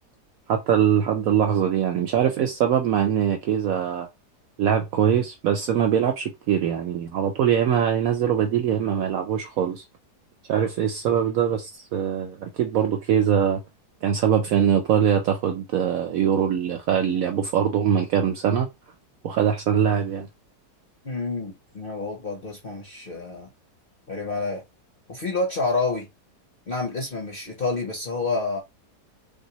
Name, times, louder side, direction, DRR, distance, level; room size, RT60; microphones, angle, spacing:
voice 1, 0.5-4.1 4.6-9.8 10.5-13.6 14.0-18.7 19.2-20.3, right 8 dB, 70° right, 0.8 m, -22 dB
voice 2, 21.0-23.5 24.1-24.6 25.1-26.1 26.7-28.6, left 3 dB, 50° left, 0.7 m, -28 dB
3.5 x 2.6 x 2.8 m
omnidirectional pair, 1.9 m